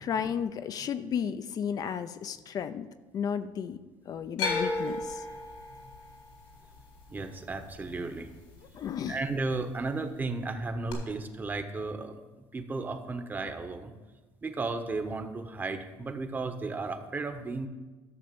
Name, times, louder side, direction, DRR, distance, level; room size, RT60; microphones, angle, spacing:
voice 1, 0.0-2.9 3.1-3.8 4.1-5.2 8.7-9.2, left 7 dB, 45° left, 11 dB, 0.6 m, -33 dB
sound 1, 4.4-8.6 8.9-9.6 10.9-11.0, left 3 dB, 90° left, 3.8 m, -34 dB
voice 2, 7.1-8.3 9.1-12.2 12.5-13.9 14.4-17.7, right 3 dB, 20° right, 7 dB, 1.1 m, -34 dB
12.5 x 6.8 x 6.9 m, 1.2 s
cardioid pair, 125°, 9 cm